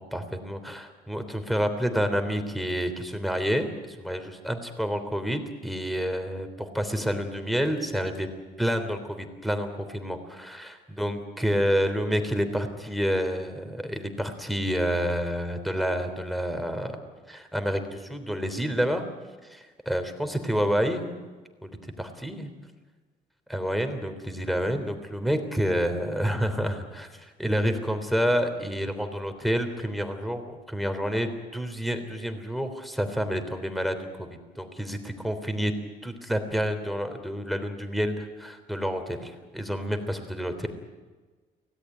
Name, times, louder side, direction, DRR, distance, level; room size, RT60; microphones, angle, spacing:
voice 1, 0.0-8.3 8.6-17.0 17.3-19.0 19.4-21.1 21.6-22.5 23.5-35.7 36.0-40.7, equal, ahead, 8 dB, 3.4 m, -29 dB
24.5 x 18.0 x 9.3 m, 1.3 s
cardioid pair, 110°, 17 cm